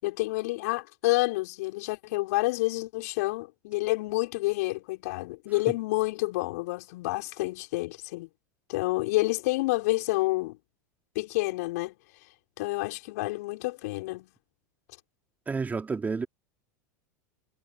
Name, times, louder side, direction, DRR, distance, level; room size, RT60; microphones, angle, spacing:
voice 1, 0.0-8.3 8.7-10.6 11.1-11.9 12.6-14.3, left 21 dB, 60° left, 6.3 m, -29 dB
voice 2, 15.5-16.3, right 4 dB, 15° right, 3.3 m, -30 dB
hypercardioid pair, 85°, 9 cm